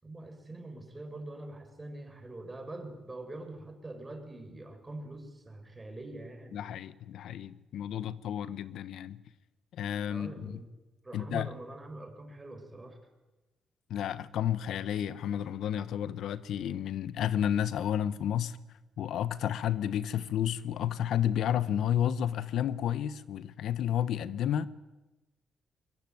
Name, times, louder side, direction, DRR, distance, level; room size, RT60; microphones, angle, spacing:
voice 1, 0.0-6.6 10.1-10.7 11.0-13.0, right 2 dB, 20° right, 6.6 m, -44 dB
voice 2, 6.5-9.2 9.7-10.6 11.1-11.5 13.9-18.6 19.0-24.7, left 10 dB, 75° left, 1.2 m, -31 dB
22.5 x 22.0 x 9.5 m
cardioid pair, 90°, 0 cm